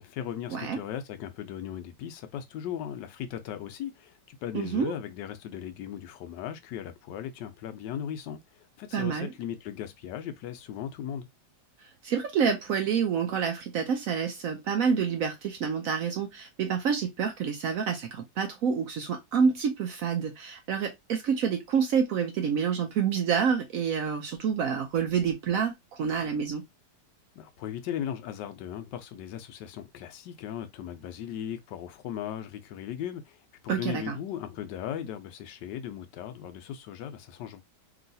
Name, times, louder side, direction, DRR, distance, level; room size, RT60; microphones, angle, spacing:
voice 1, 0.0-11.3 27.3-37.6, left 9 dB, 80° left, 1.2 m, -37 dB
voice 2, 4.5-4.9 8.9-9.3 11.8-26.6 33.7-34.2, right 6 dB, 70° right, 0.8 m, -28 dB
3.0 x 2.8 x 2.6 m
omnidirectional pair, 1.9 m